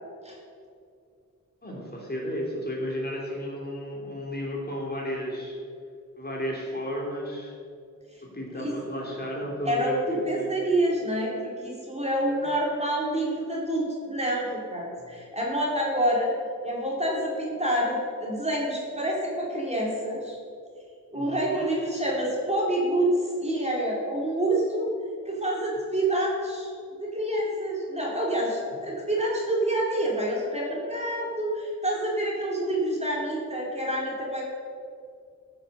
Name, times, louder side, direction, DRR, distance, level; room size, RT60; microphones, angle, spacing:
voice 1, 1.6-5.6 6.2-7.5 8.2-10.0 10.3-10.6 12.3-12.4 15.0-15.1 21.1-21.5, equal, 30° left, -3 dB, 3.1 m, -33 dB
voice 2, 9.6-16.3 16.6-20.4 21.1-23.1 23.4-24.9 25.3-26.7 27.0-34.4, right 1 dB, 20° right, -4 dB, 2.7 m, -27 dB
14.0 x 6.7 x 6.6 m, 2.4 s
wide cardioid pair, 100°, 32 cm